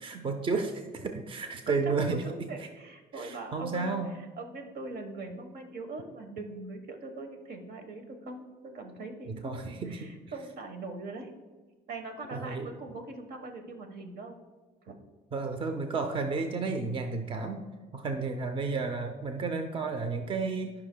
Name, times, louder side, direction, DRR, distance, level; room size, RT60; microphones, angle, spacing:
voice 1, 0.0-2.7 3.1-4.1 9.3-10.1 12.3-12.7 15.3-17.6 17.9-20.7, right 4 dB, 30° right, 6 dB, 0.6 m, -32 dB
voice 2, 1.7-11.3 11.9-14.4 14.8-15.0, right 3 dB, 65° right, 5 dB, 1.2 m, -41 dB
13.0 x 5.7 x 2.2 m, 1.3 s
cardioid pair, 110°, 17 cm